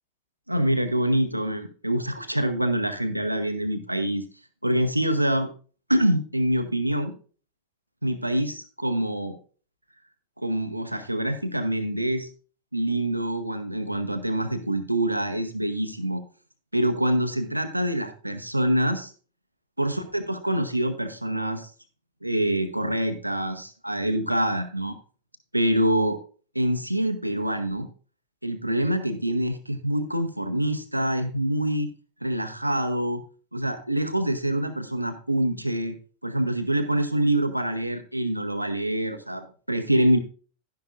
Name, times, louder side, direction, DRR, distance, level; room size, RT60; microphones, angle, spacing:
voice 1, 0.5-4.2 4.6-5.5 5.9-7.1 8.0-9.4 10.4-12.3 12.7-16.2 16.7-19.1 19.8-21.7 22.2-25.0 25.5-26.2 26.5-27.9 28.4-31.9 32.2-33.2 33.5-36.0 36.2-40.2, right 1 dB, 90° right, 7 dB, 0.8 m, -25 dB
11.5 x 10.5 x 2.5 m, 0.40 s
figure-of-eight pair, 90°, 0 cm